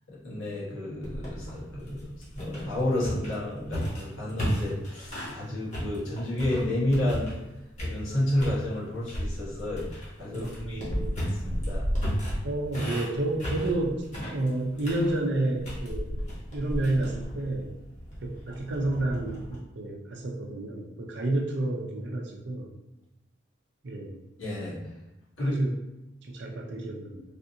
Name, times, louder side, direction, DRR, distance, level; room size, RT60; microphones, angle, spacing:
voice 1, 0.1-7.3 7.8-10.9 11.3-11.9 24.4-24.8 25.4-25.6, left 1 dB, 85° left, -6 dB, 1.2 m, -31 dB
sound 1, 1.0-5.4 5.7-7.5 7.8-8.6 9.1-19.6, equal, 35° left, 0.9 m, -34 dB
voice 2, 10.3-11.2 12.4-14.0 14.3-16.1 16.5-17.7 18.2-22.7 23.8-24.2 25.4-25.7 26.2-27.2, right 2 dB, 60° right, 0 dB, 0.5 m, -30 dB
3.3 x 2.6 x 2.7 m, 0.97 s
head